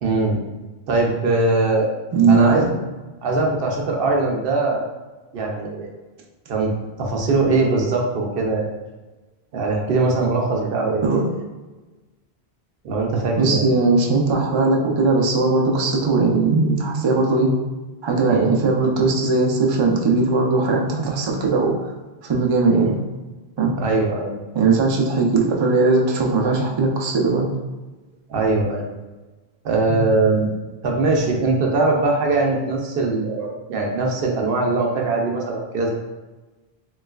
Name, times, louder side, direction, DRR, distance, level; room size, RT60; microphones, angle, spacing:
voice 1, 0.0-0.4 0.9-1.9 2.3-2.7 3.2-4.9 5.3-5.9 6.5-8.7 9.5-11.1 12.8-13.7 18.3-18.5 22.7-22.9 23.8-24.3 28.3-28.9 29.6-30.5 30.8-35.9, right 3 dB, 65° right, 0 dB, 0.7 m, -21 dB
voice 2, 2.1-2.7 11.0-11.3 13.4-17.5 18.0-21.8 22.2-22.9 23.6-23.7 24.5-27.5 29.9-30.0, right 3 dB, 50° right, -1 dB, 0.3 m, -19 dB
3.1 x 3.0 x 2.3 m, 1.2 s
omnidirectional pair, 1.1 m